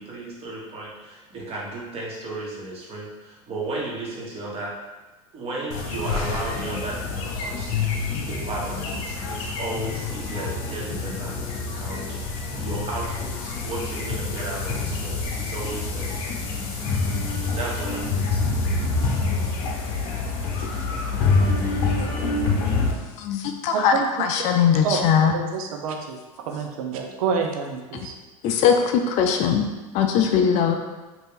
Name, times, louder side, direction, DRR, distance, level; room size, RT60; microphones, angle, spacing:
voice 1, 0.0-4.7 5.3-12.2 12.5-16.3 17.5-18.4, right 2 dB, 35° right, -4 dB, 1.2 m, -34 dB
sound 1, 5.7-22.9, left 3 dB, 60° left, 0.8 m, -26 dB
voice 2, 23.2-25.3 28.4-29.6 29.9-30.8, left 7 dB, 40° left, 4 dB, 0.4 m, -20 dB
voice 3, 23.7-24.1 24.8-28.1, right 6 dB, 80° right, 3 dB, 0.5 m, -28 dB
2.9 x 2.5 x 3.6 m, 1.2 s
hypercardioid pair, 105°, 18 cm